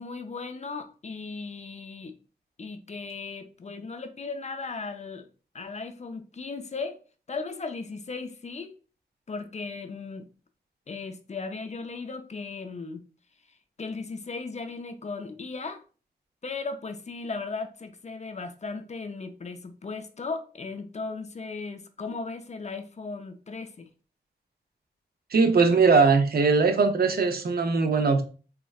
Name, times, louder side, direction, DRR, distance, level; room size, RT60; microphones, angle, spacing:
voice 1, 0.0-2.1 2.6-5.3 5.5-7.0 7.3-8.7 9.3-10.3 10.9-13.0 13.5-15.8 16.4-23.9, left 4 dB, 40° left, 7 dB, 0.4 m, -36 dB
voice 2, 25.3-28.2, right 4 dB, 60° right, 6 dB, 0.5 m, -20 dB
3.5 x 2.0 x 2.3 m, 0.37 s
cardioid pair, 50°, 18 cm